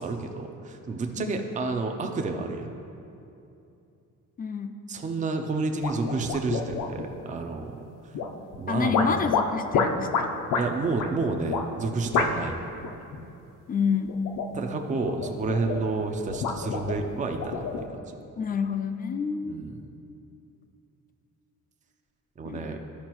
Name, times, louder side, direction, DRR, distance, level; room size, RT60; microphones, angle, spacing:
voice 1, 0.0-2.7 4.9-8.2 8.6-9.2 10.5-12.6 14.5-17.7 18.1-18.2 19.5-19.8 22.4-22.8, right 3 dB, 25° right, 5 dB, 0.5 m, -30 dB
voice 2, 4.4-4.7 8.7-10.3 13.7-14.2 18.4-19.6 22.4-22.8, left 6 dB, 30° left, 8 dB, 0.4 m, -28 dB
sound 1, 5.8-7.1 8.1-8.6 8.9-10.7 11.0-11.1 11.5-11.7 12.1-12.5 12.8-13.2 14.1-14.6 15.0-15.9 16.3-17.8, left 5 dB, 85° left, 0.7 m, -28 dB
12.5 x 5.3 x 3.0 m, 2.7 s
cardioid pair, 135°, 31 cm